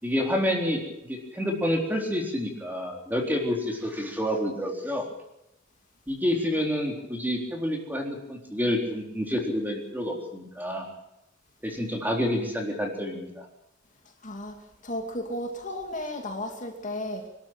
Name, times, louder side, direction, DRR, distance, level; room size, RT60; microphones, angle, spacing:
voice 1, 0.0-5.1 6.1-10.9 11.6-13.5, equal, 10° right, 1 dB, 3.8 m, -28 dB
voice 2, 14.2-17.3, left 1 dB, 40° left, 2 dB, 2.7 m, -34 dB
24.5 x 12.5 x 8.9 m, 0.87 s
head